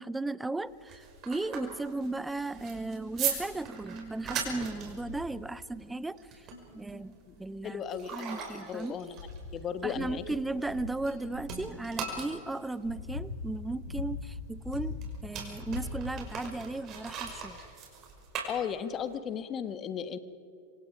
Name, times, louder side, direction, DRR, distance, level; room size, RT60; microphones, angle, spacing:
voice 1, 0.0-6.5 6.7-7.8 8.1-9.0 9.8-15.0 15.2-17.6, right 2 dB, 5° right, 18 dB, 0.7 m, -36 dB
sound 1, 0.7-11.2 11.4-19.1, right 6 dB, 35° right, 5.5 m, -40 dB
sound 2, 2.7-3.1 3.6-3.7 4.2-4.4 4.9-5.4 6.8-6.9 7.7-8.3 8.8-11.7 12.4-15.2 15.5-16.5 17.3-17.4, left 4 dB, 65° left, 5.0 m, -41 dB
voice 2, 7.6-9.3 9.5-10.2 18.5-20.2, left 8 dB, 30° left, 12 dB, 1.5 m, -36 dB
27.5 x 26.0 x 5.0 m, 2.5 s
figure-of-eight pair, 90°, 0 cm